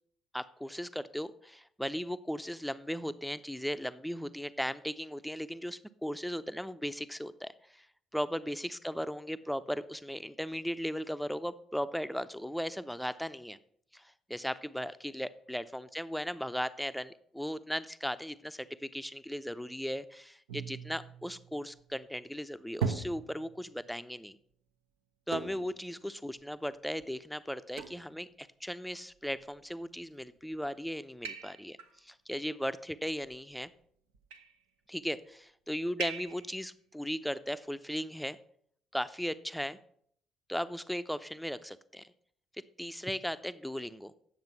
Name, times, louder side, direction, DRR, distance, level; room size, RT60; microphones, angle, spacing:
voice 1, 0.3-7.9 8.1-13.6 13.9-24.4 25.3-33.7 34.9-38.4 38.9-39.8 40.5-42.1 42.8-44.1, equal, ahead, 13 dB, 0.6 m, -37 dB
sound 1, 20.5-21.9 22.8-23.8 25.3-25.8 26.4-26.5 27.0-27.1 27.8-28.1 29.2-29.7 30.4-30.7 31.3-31.9 33.1-33.7 34.1-34.6 36.0-36.6, right 6 dB, 70° right, 0.8 m, -40 dB
9.4 x 7.3 x 5.7 m, 0.65 s
figure-of-eight pair, 50°, 0 cm